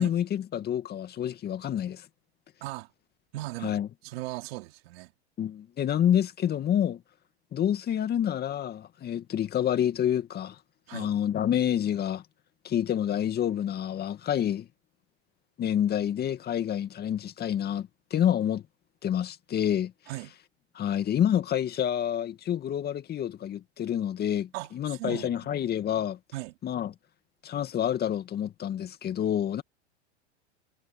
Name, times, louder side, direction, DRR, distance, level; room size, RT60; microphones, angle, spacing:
voice 1, 0.0-2.1 3.6-3.9 5.4-7.0 7.5-10.6 10.9-12.2 12.6-14.7 15.6-18.6 19.0-19.9 20.7-26.2 26.6-26.9 27.4-29.6, left 10 dB, 30° left, 2.3 m, -28 dB
voice 2, 2.6-2.9 3.3-5.1 10.9-11.1 20.1-20.3 24.5-25.6 26.3-26.6, right 19 dB, 60° right, 3.6 m, -38 dB
hypercardioid pair, 115°, 34 cm